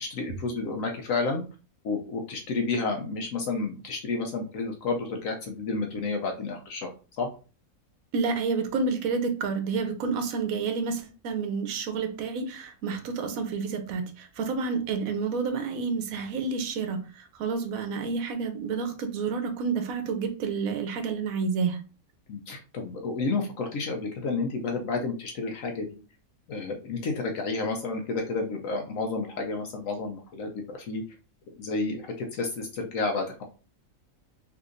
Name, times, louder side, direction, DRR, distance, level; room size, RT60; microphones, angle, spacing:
voice 1, 0.0-1.4 1.8-6.9 7.2-7.3 22.3-26.0 26.5-31.0 31.6-33.4, left 3 dB, 70° left, 3 dB, 1.0 m, -31 dB
voice 2, 8.1-21.8, right 5 dB, 80° right, 7 dB, 1.1 m, -29 dB
3.4 x 2.8 x 2.5 m, 0.34 s
omnidirectional pair, 1.5 m